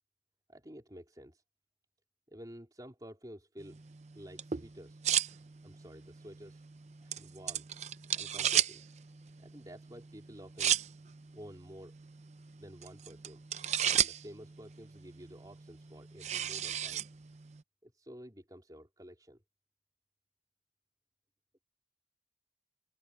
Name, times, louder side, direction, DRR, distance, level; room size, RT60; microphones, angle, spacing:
voice 1, 0.5-1.4 2.3-3.8 4.1-5.0 5.6-6.6 7.0-7.7 8.2-8.8 9.4-10.8 11.3-12.0 12.6-13.4 13.8-17.0 17.8-19.4, equal, 20° right, 4.0 m, -51 dB
sound 1, 3.6-17.6, right 9 dB, 40° right, 0.6 m, -36 dB
open air
head